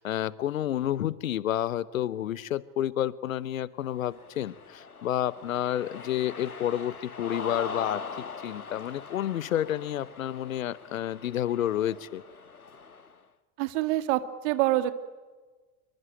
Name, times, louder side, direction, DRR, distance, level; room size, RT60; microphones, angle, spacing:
voice 1, 0.0-12.2, left 11 dB, 70° left, 21 dB, 0.9 m, -30 dB
Cheering, 3.9-13.2, left 4 dB, 85° left, 1.3 m, -42 dB
voice 2, 13.6-14.9, right 15 dB, 55° right, 11 dB, 2.0 m, -26 dB
26.5 x 23.5 x 9.1 m, 1.3 s
figure-of-eight pair, 75°, 43 cm